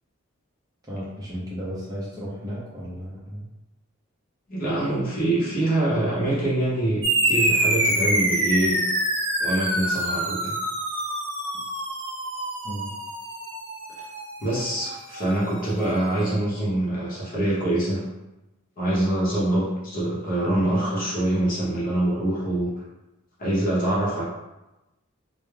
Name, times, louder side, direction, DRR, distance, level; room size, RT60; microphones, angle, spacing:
voice 1, 0.9-3.4 11.5-11.6 12.6-12.9, equal, 15° right, -8 dB, 0.5 m, -34 dB
voice 2, 4.5-8.8 9.4-10.6 14.4-18.0 18.8-22.7 23.4-24.2, right 1 dB, 40° left, -7 dB, 0.7 m, -24 dB
sound 1, 7.0-15.9, right 1 dB, 55° right, 0.8 m, -26 dB
2.2 x 2.0 x 3.1 m, 0.99 s
head